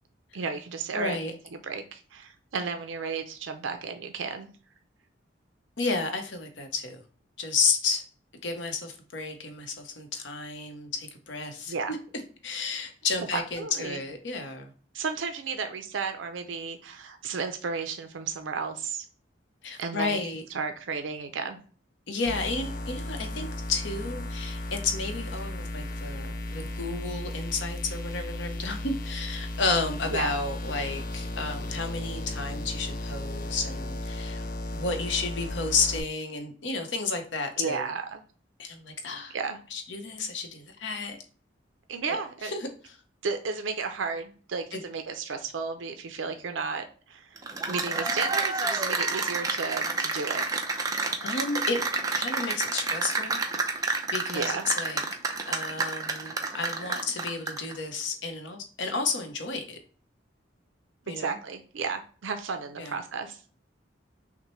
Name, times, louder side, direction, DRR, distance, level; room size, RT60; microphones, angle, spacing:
voice 1, 0.3-1.4 1.6-4.5 11.7-12.0 13.3-14.0 14.9-19.0 19.8-20.2 20.5-21.6 30.1-30.3 37.6-38.2 39.3-39.6 41.9-42.5 43.2-47.4 47.7-50.9 54.3-54.7 61.1-63.4, right 5 dB, 85° right, 7 dB, 0.5 m, -33 dB
voice 2, 0.9-1.3 5.8-7.0 7.4-8.0 8.4-12.0 12.4-14.7 19.6-20.4 22.1-34.5 34.7-37.9 38.6-39.3 39.7-41.2 42.1-42.2 42.4-42.7 44.7-44.8 51.2-51.8 52.1-53.4 54.1-55.0 55.5-59.8 61.1-61.4 62.8-62.9, left 4 dB, 70° left, 5 dB, 0.8 m, -32 dB
sound 1, 22.3-36.0, left 1 dB, 45° left, 0.4 m, -35 dB
Cheering / Applause, 47.4-57.7, right 3 dB, 20° right, 0.5 m, -29 dB
5.9 x 2.1 x 3.1 m, 0.40 s
head